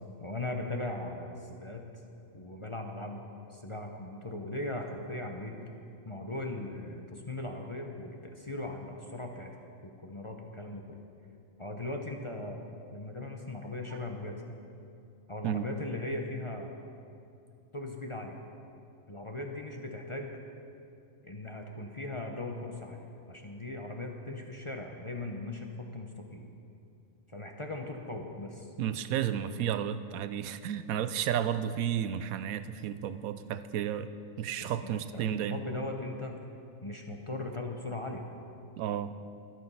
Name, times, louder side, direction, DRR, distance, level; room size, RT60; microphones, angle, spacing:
voice 1, 0.2-1.8 2.3-3.2 3.5-5.5 6.0-9.5 10.0-11.0 11.6-12.6 12.9-14.6 15.3-16.7 17.7-18.4 19.1-20.4 21.2-23.0 23.3-26.4 27.3-28.7 34.6-36.4 36.8-38.2, left 2 dB, 25° left, 2 dB, 0.7 m, -39 dB
voice 2, 28.8-34.1 34.4-35.6 38.8-39.1, right 9 dB, 85° right, 13 dB, 1.0 m, -32 dB
13.0 x 11.0 x 5.6 m, 2.6 s
omnidirectional pair, 1.4 m